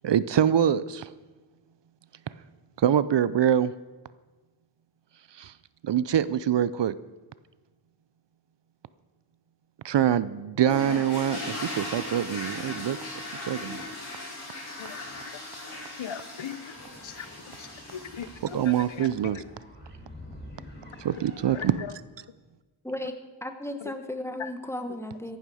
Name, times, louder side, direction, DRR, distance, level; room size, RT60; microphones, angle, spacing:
voice 1, 0.0-1.1 2.8-3.7 5.4-5.5 5.8-7.0 9.8-13.0 13.5-13.8 18.5-19.4 21.0-21.8, right 9 dB, 60° right, 17 dB, 0.5 m, -24 dB
sound 1, 10.6-19.1, left 2 dB, 50° left, 5.7 m, -38 dB
voice 2, 16.0-16.7 17.0-17.3 17.6-19.4 21.5-21.9 24.4-24.5, left 8 dB, 70° left, 14 dB, 0.8 m, -39 dB
sound 2, 16.8-21.8, equal, 20° left, 3.8 m, -47 dB
voice 3, 23.4-25.4, left 1 dB, 5° left, 7 dB, 1.1 m, -35 dB
14.5 x 11.5 x 4.8 m, 1.2 s
wide cardioid pair, 90°, 49 cm